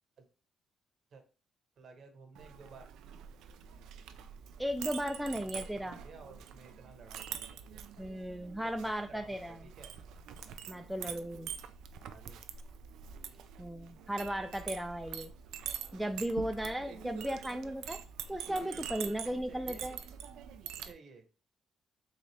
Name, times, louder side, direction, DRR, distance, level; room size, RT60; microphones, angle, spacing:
voice 1, 1.8-2.9 5.4-8.1 8.6-9.9 12.1-12.4 16.3-16.5 18.4-20.0 20.8-21.3, right 5 dB, 60° right, 0.9 m, -55 dB
Chink clink, 2.3-20.9, right 8 dB, 85° right, 0.3 m, -45 dB
voice 2, 4.6-6.0 8.0-9.6 10.7-11.5 13.6-15.3 15.9-18.0 18.3-20.0, equal, 5° right, 0.3 m, -36 dB
4.1 x 2.4 x 3.2 m
cardioid pair, 90°, 0 cm